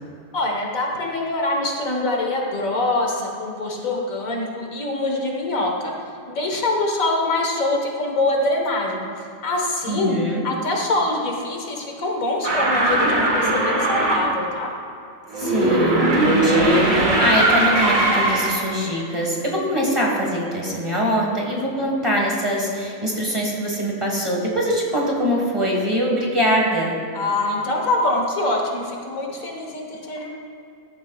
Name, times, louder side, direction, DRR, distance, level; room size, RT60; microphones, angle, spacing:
voice 1, 0.3-5.9 6.3-9.1 9.4-10.2 10.4-14.8 27.1-30.3, left 2 dB, 80° left, 0 dB, 1.8 m, -24 dB
voice 2, 9.9-10.5 15.4-27.0, equal, 20° right, -2 dB, 1.7 m, -23 dB
sound 1, 12.4-14.3 15.3-18.7, right 2 dB, 75° right, 2.1 m, -19 dB
14.0 x 11.0 x 2.4 m, 2.6 s
omnidirectional pair, 1.4 m